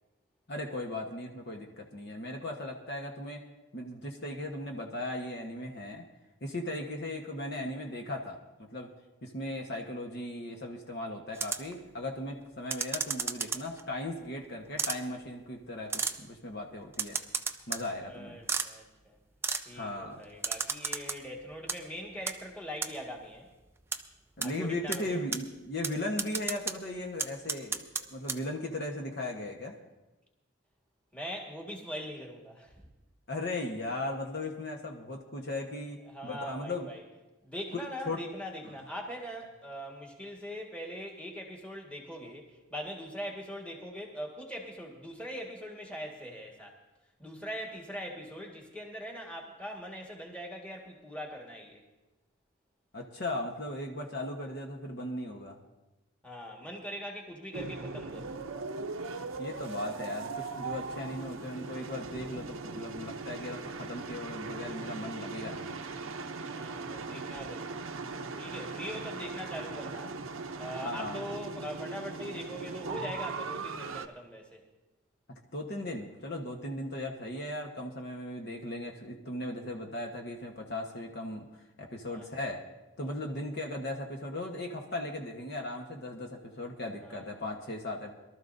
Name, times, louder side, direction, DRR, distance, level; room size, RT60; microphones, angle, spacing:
voice 1, 0.5-3.4 3.7-6.1 6.4-8.4 8.7-8.9 9.2-17.2 17.7-18.4 19.7-20.2 24.4-29.7 33.3-36.9 37.7-37.8 38.1-38.2 38.6-38.8 52.9-55.6 59.4-65.8 70.8-71.2 75.5-81.5 81.8-82.6 83.0-88.1, left 1 dB, 50° left, 1 dB, 1.2 m, -37 dB
sound 1, 11.3-11.7 12.7-13.8 14.8-15.0 15.9-16.2 16.9-17.8 18.5-18.7 19.4-19.6 20.4-21.2 21.5-21.8 22.3-22.4 22.8-22.9 23.9-24.0 24.4-24.5 24.9-25.0 25.3-25.4 25.8-25.9 26.2-26.7 27.2-28.0 28.3-28.4, right 5 dB, 10° right, 0.4 m, -32 dB
voice 2, 18.1-19.2 19.6-23.5 24.4-24.5 24.8-25.2 31.1-32.7 36.1-37.0 37.4-46.7 47.2-51.8 56.2-58.3 66.5-67.8 68.3-70.2 70.6-74.6 82.1-82.3 83.0-83.1 87.0-87.4, equal, 5° left, -1 dB, 1.7 m, -42 dB
sound 2, 57.5-74.1, right 4 dB, 70° right, 0.7 m, -39 dB
23.0 x 13.0 x 2.7 m, 1.1 s
head